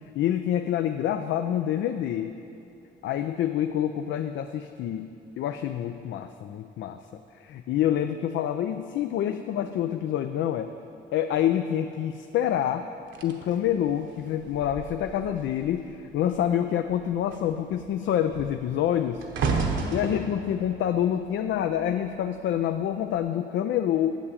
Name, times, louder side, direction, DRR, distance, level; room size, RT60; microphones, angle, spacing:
voice 1, 0.2-2.4 3.0-7.0 7.4-10.7 11.1-12.9 13.2-19.2 19.9-24.1, left 10 dB, 70° left, 8 dB, 0.4 m, -27 dB
sound 1, 13.1-15.8 16.1-16.5 16.8-22.2 22.9-23.2, right 4 dB, 75° right, 1.1 m, -33 dB
7.5 x 7.2 x 8.3 m, 2.6 s
cardioid pair, 90°, 20 cm